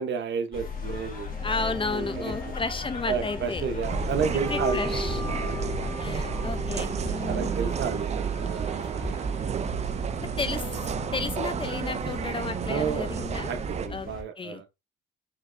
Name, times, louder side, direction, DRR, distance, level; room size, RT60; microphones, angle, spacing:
voice 1, 0.0-2.3 3.1-4.8 5.4-5.5 7.3-9.4 12.7-13.1 13.5-14.6, right 6 dB, 65° right, 0.9 m, -32 dB
sound 1, 0.5-14.2, left 4 dB, 45° left, 1.7 m, -37 dB
sound 2, 1.3-14.2, equal, 10° right, 1.6 m, -40 dB
voice 2, 1.4-3.7 4.3-5.2 6.0-7.5 10.2-13.5 13.9-14.1 14.4-14.6, left 4 dB, 25° left, 0.6 m, -33 dB
sound 3, 3.8-13.9, right 8 dB, 35° right, 0.4 m, -31 dB
5.9 x 3.2 x 2.5 m
cardioid pair, 90°, 20 cm